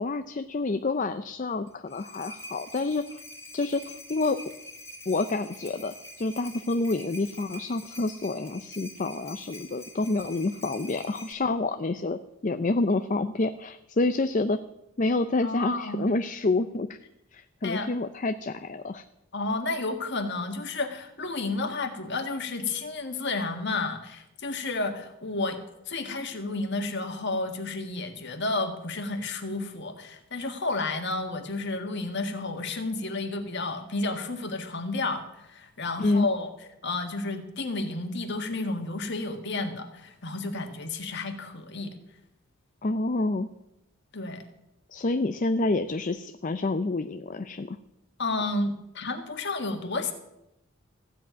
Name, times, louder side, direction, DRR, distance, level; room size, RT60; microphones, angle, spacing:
voice 1, 0.0-3.2 3.5-4.4 5.1-14.6 15.0-17.0 17.3-19.0 36.0-36.3 42.8-43.5 44.9-47.8, left 2 dB, 35° left, 10 dB, 0.5 m, -28 dB
sound 1, 1.7-11.3, left 1 dB, 10° left, 2.4 m, -46 dB
voice 2, 15.4-16.0 17.6-17.9 19.3-25.6 25.9-36.5 36.8-42.0 44.1-44.4 48.2-50.1, left 3 dB, 50° left, 6 dB, 1.7 m, -31 dB
15.5 x 7.5 x 9.1 m, 0.87 s
head